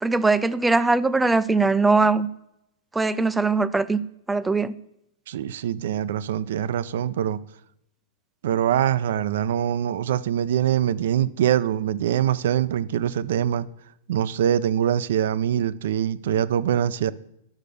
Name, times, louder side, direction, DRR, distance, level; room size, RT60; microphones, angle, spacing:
voice 1, 0.0-2.3 2.9-4.0 4.3-4.7, right 3 dB, 10° right, 0.5 m, -21 dB
voice 2, 5.3-7.4 8.4-13.7 14.1-17.1, right 10 dB, 70° right, 0.5 m, -23 dB
10.0 x 6.5 x 6.7 m
hypercardioid pair, 120°, 0 cm